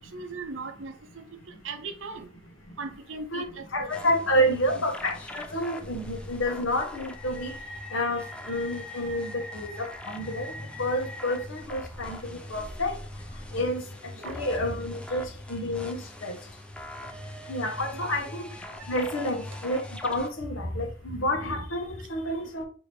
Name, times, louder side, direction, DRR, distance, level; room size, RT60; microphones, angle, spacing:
voice 1, 0.1-1.4 1.6-2.3 2.8-4.6 14.1-14.3 17.9-18.3, right 4 dB, 70° right, 0.6 m, -39 dB
voice 2, 3.7-7.5 7.9-10.5 10.8-13.0 13.5-13.8 14.2-16.4 17.5-18.5 18.9-22.6, equal, 90° left, 1.1 m, -29 dB
sound 1, 3.9-20.3, left 1 dB, 5° left, 0.4 m, -41 dB
4.9 x 2.8 x 3.1 m
head